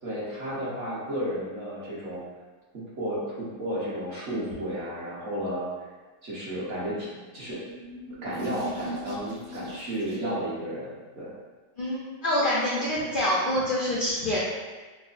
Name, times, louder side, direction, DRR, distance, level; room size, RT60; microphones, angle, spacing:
voice 1, 0.0-2.2 2.7-5.7 6.2-7.1 7.3-7.6 8.2-11.3, equal, 55° right, -8 dB, 1.1 m, -32 dB
sound 1, 7.3-10.5, equal, 85° right, 1.3 m, -40 dB
voice 2, 11.8-14.4, left 1 dB, 85° left, -7 dB, 0.4 m, -26 dB
4.7 x 2.0 x 2.4 m, 1.3 s
omnidirectional pair, 1.6 m